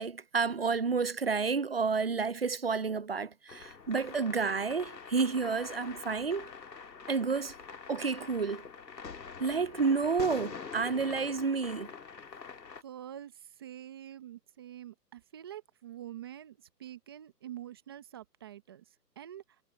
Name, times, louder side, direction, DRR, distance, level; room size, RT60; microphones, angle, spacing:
voice 1, 0.0-6.5 7.1-7.5 7.9-8.7 9.4-11.9, right 5 dB, 40° right, 0.5 m, -30 dB
sound 1, 3.5-12.8, left 5 dB, 80° left, 2.1 m, -45 dB
voice 2, 12.8-19.6, right 11 dB, 15° right, 1.1 m, -46 dB
hypercardioid pair, 160°, 49 cm